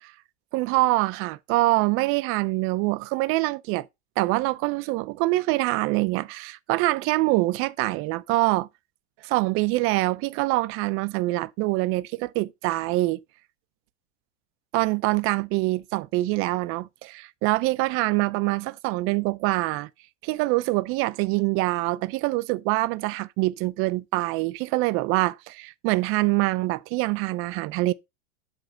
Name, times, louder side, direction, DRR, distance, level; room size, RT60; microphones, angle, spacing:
voice 1, 0.5-3.9 4.2-8.7 9.2-13.2 14.7-19.9 20.2-27.9, right 21 dB, 40° right, 0.5 m, -25 dB
7.9 x 3.3 x 6.4 m
supercardioid pair, 150°, 35 cm